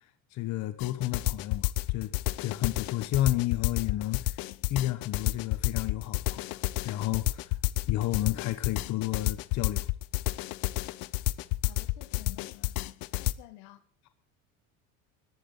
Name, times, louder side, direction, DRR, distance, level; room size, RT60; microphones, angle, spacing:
voice 1, 0.3-2.1 2.4-4.4 4.7-7.5 7.9-9.9 12.3-12.4, left 14 dB, 50° left, 1.2 m, -31 dB
sound 1, 0.8-13.3, left 20 dB, 65° left, 0.8 m, -30 dB
voice 2, 11.6-12.7 13.1-13.8, left 17 dB, 85° left, 2.2 m, -52 dB
14.5 x 11.5 x 5.5 m
cardioid pair, 145°, 36 cm